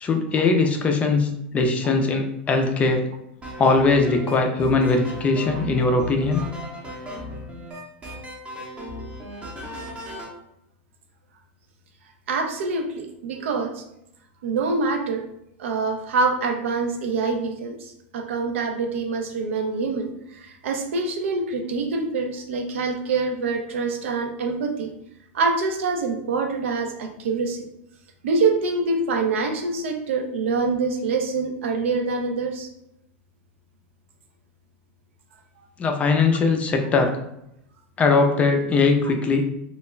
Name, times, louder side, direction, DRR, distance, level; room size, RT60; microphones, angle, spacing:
voice 1, 0.0-3.1 3.6-6.4 35.8-37.1 38.0-39.4, left 3 dB, 20° left, 4 dB, 0.3 m, -20 dB
sound 1, 3.4-10.3, equal, 20° right, 0.6 m, -36 dB
voice 2, 12.3-13.8 14.4-15.2 15.6-24.9 25.3-27.7 28.2-32.7, right 4 dB, 85° right, 5 dB, 0.4 m, -25 dB
2.3 x 2.1 x 3.0 m, 0.79 s
supercardioid pair, 140°, 7 cm